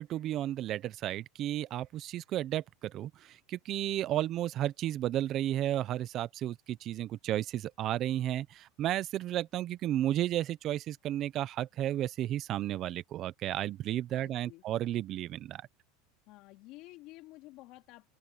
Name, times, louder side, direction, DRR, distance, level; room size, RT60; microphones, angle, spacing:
voice 1, 0.0-15.7, right 13 dB, 40° right, 0.7 m, -33 dB
voice 2, 14.1-14.6 16.3-18.2, left 19 dB, 55° left, 2.7 m, -52 dB
open air
supercardioid pair, 135°, 0 cm